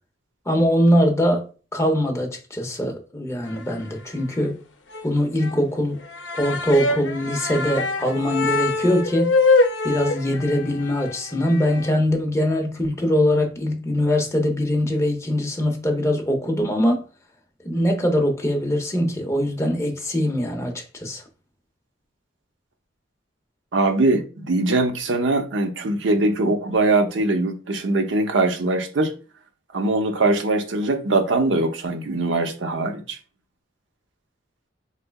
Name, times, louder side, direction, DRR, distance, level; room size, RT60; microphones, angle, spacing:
voice 1, 0.5-4.6 5.0-6.0 6.3-9.4 9.8-17.0 17.6-21.2, equal, 15° left, 0.6 m, -22 dB
sound 1, 3.4-4.1 4.4-4.5 4.9-5.1 5.4-5.6 5.9-11.9, left 3 dB, 70° left, 0.5 m, -24 dB
voice 2, 23.7-29.1 29.7-33.2, right 2 dB, 75° right, 0.6 m, -22 dB
3.6 x 3.1 x 2.2 m
head